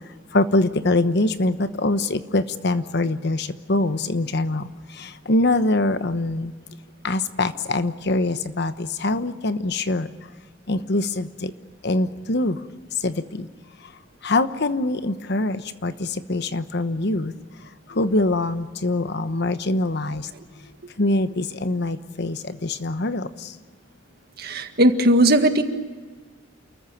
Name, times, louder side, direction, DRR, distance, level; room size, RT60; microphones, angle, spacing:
voice 1, 0.3-4.6 5.3-6.5 7.0-10.1 10.7-11.5 11.8-12.6 13.0-13.4 14.2-15.9 16.3-17.3 18.0-20.2 21.0-22.4 22.6-23.3, left 2 dB, 60° left, 11 dB, 1.1 m, -23 dB
voice 2, 24.4-25.6, right 1 dB, 55° right, 7 dB, 1.8 m, -17 dB
29.0 x 14.5 x 9.1 m, 1.5 s
head